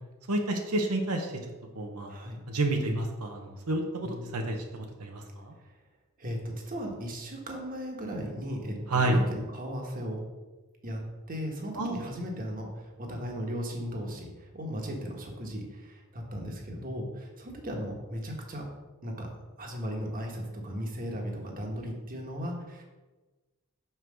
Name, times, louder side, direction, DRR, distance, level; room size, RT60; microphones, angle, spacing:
voice 1, 0.3-1.3 1.7-2.1 2.5-5.5 8.9-9.2 11.8-12.0, right 2 dB, 90° right, 2 dB, 0.9 m, -30 dB
voice 2, 2.1-2.4 4.0-4.3 5.6-5.7 6.2-10.2 10.8-11.0 11.3-18.7 19.0-19.3 19.6-22.8, equal, 40° right, 1 dB, 1.3 m, -36 dB
5.7 x 4.7 x 6.2 m, 1.2 s
head